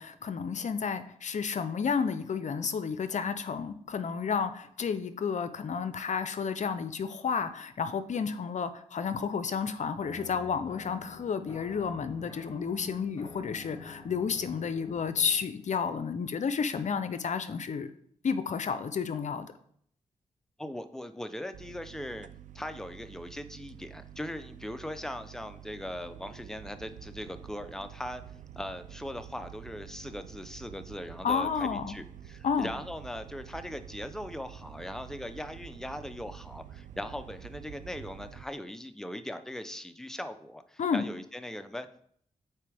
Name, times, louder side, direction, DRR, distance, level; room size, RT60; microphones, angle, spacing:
voice 1, 0.0-17.9 18.2-19.5 31.2-32.0 32.4-32.7 40.8-41.0, left 6 dB, 60° left, 11 dB, 0.6 m, -31 dB
sound 1, 10.0-15.6, left 2 dB, 35° left, 2.3 m, -48 dB
voice 2, 20.6-22.3 22.5-28.2 28.6-42.0, left 1 dB, 5° left, 9 dB, 0.7 m, -40 dB
sound 2, 21.5-38.4, right 10 dB, 70° right, 0.4 m, -48 dB
8.3 x 4.6 x 3.5 m, 0.64 s
cardioid pair, 50°, 14 cm